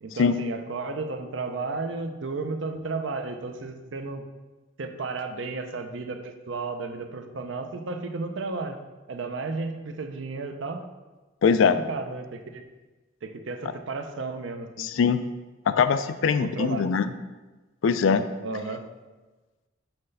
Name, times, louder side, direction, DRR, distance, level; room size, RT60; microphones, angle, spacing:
voice 1, 0.0-4.2 4.8-8.8 9.1-10.8 11.7-12.6 13.2-14.9 16.4-16.9 18.4-18.9, right 3 dB, 75° right, 6 dB, 0.6 m, -33 dB
voice 2, 11.4-11.8 14.8-15.2 15.7-17.1 17.8-18.2, left 6 dB, 90° left, 11 dB, 0.4 m, -22 dB
5.8 x 3.3 x 5.4 m, 1.2 s
head